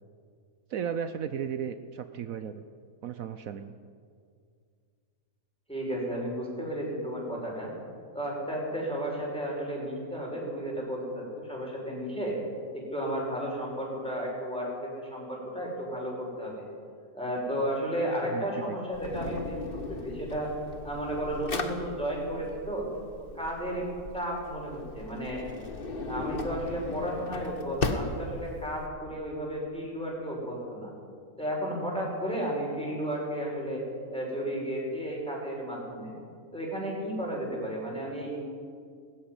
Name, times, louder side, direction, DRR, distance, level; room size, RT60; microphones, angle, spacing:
voice 1, 0.7-2.6 3.0-3.7 18.3-18.8, right 8 dB, 70° right, 10 dB, 1.2 m, -35 dB
voice 2, 5.7-7.7 8.1-12.4 12.7-16.6 17.1-20.5 20.8-22.9 23.4-25.6 26.1-30.9 31.4-33.8 34.1-36.1 36.5-38.5, equal, 5° left, -2 dB, 6.0 m, -33 dB
Drawer open or close, 18.9-28.9, left 3 dB, 40° left, 1.5 m, -37 dB
19.5 x 14.5 x 9.8 m, 2.2 s
omnidirectional pair, 1.5 m